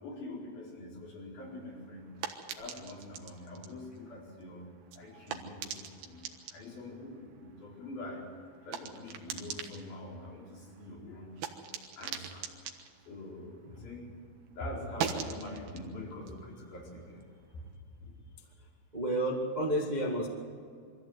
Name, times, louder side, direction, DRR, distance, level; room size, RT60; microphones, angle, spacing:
voice 1, 0.0-2.0 2.6-4.6 5.0-5.7 6.1-6.2 6.5-7.3 7.6-8.2 8.7-10.4 10.8-11.3 12.0-12.4 13.1-14.0 14.6-17.0, left 1 dB, 75° left, -4 dB, 6.5 m, -43 dB
sound 1, 1.4-14.2 14.5-17.7, right 8 dB, 75° right, 3.1 m, -44 dB
voice 2, 18.9-20.3, right 1 dB, 35° right, 0 dB, 0.6 m, -30 dB
24.0 x 15.0 x 8.1 m, 2.3 s
omnidirectional pair, 4.3 m